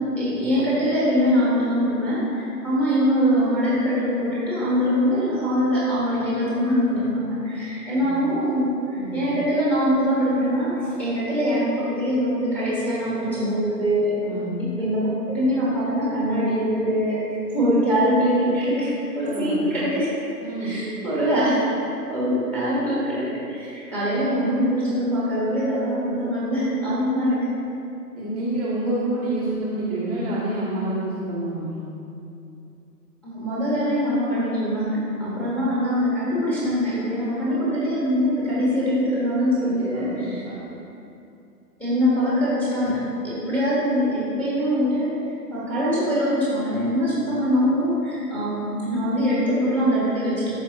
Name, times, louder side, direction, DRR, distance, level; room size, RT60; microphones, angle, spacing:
voice 1, 0.0-14.1 14.8-20.1 20.6-21.7 22.1-27.5 33.2-40.4 41.8-45.2 45.5-50.5, equal, 5° left, -9 dB, 1.3 m, -23 dB
voice 2, 14.2-14.5 19.3-19.7 20.4-20.8 28.1-31.9 35.2-35.4 39.6-40.6, right 1 dB, 25° right, -9 dB, 0.9 m, -28 dB
12.5 x 4.9 x 2.9 m, 2.6 s
figure-of-eight pair, 145°, 50 cm